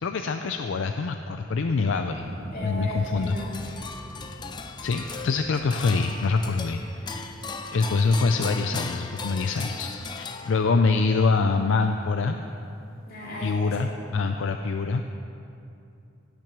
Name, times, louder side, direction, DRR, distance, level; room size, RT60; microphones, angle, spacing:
voice 1, 0.0-2.3 2.6-3.4 4.8-7.3 7.7-12.4 13.4-15.0, left 4 dB, 75° left, 6 dB, 0.4 m, -25 dB
sound 1, 2.2-8.5 8.9-9.5, equal, 50° right, 1.4 m, -43 dB
voice 2, 2.5-3.8 13.1-13.9, left 1 dB, 50° left, -5 dB, 2.7 m, -36 dB
sound 2, 3.2-10.9, left 4 dB, 20° left, 0.5 m, -37 dB
17.0 x 6.1 x 6.0 m, 2.7 s
head